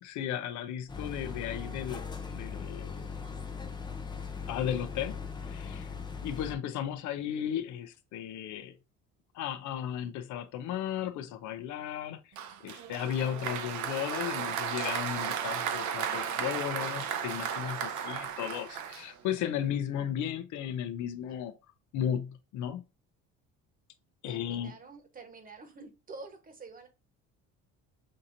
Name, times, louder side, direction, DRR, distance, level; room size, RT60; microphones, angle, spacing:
voice 1, 0.0-2.1 2.3-3.1 4.5-5.9 6.2-8.7 9.3-12.2 12.6-21.5 21.9-22.8 24.2-24.7, left 10 dB, 75° left, 0.7 m, -35 dB
sound 1, 0.9-6.5, left 5 dB, 15° left, 0.6 m, -39 dB
Applause, 12.4-19.5, right 8 dB, 75° right, 0.8 m, -35 dB
voice 2, 24.3-26.9, right 3 dB, 30° right, 1.2 m, -48 dB
6.3 x 2.8 x 2.6 m
cardioid pair, 120°, 30 cm